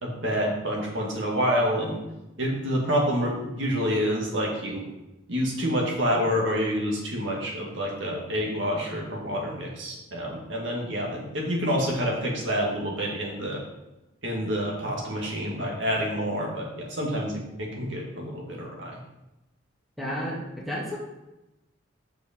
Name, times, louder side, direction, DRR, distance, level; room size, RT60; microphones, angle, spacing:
voice 1, 0.0-2.0 2.4-4.9 5.3-13.6 14.2-19.0, equal, 75° right, -2 dB, 2.0 m, -28 dB
voice 2, 20.0-20.4 20.6-21.0, equal, ahead, -5 dB, 1.7 m, -31 dB
6.4 x 5.4 x 5.2 m, 0.98 s
head